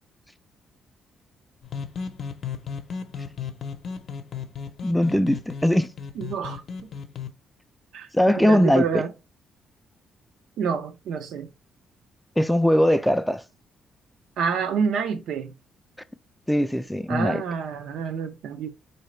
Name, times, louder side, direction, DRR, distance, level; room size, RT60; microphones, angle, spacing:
sound 1, 1.6-7.3, left 6 dB, 55° left, 0.6 m, -35 dB
voice 1, 4.8-5.9 8.1-9.0 12.4-13.4 16.5-17.4, left 1 dB, 5° left, 0.3 m, -20 dB
voice 2, 6.2-6.9 7.9-9.1 10.6-11.5 14.4-15.5 17.1-18.7, right 6 dB, 80° right, 0.5 m, -28 dB
4.0 x 2.7 x 3.1 m
cardioid pair, 90°, 0 cm